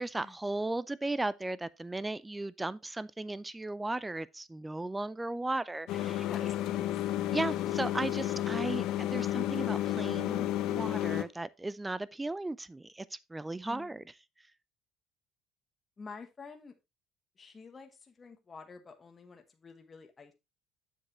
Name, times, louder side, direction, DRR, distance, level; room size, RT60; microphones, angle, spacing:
voice 1, 0.0-6.2 7.3-14.0, right 2 dB, 10° right, 0.4 m, -36 dB
sound 1, 5.9-11.2, left 13 dB, 70° left, 0.8 m, -32 dB
voice 2, 6.2-6.9 13.7-13.9 16.0-16.7 17.4-20.3, left 4 dB, 25° left, 1.2 m, -49 dB
7.3 x 7.3 x 3.0 m
cardioid pair, 130°, 0 cm